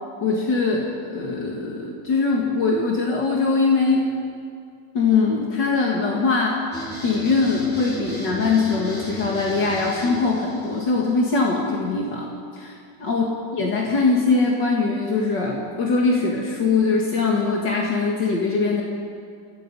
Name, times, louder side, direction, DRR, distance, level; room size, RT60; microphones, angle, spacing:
voice 1, 0.2-4.1 4.9-6.6 7.0-12.7 13.1-13.2 13.5-18.8, left 4 dB, 75° left, -3 dB, 2.7 m, -22 dB
sound 1, 6.7-11.7, right 1 dB, 5° left, 4.3 m, -36 dB
28.0 x 17.5 x 5.5 m, 2.3 s
omnidirectional pair, 1.9 m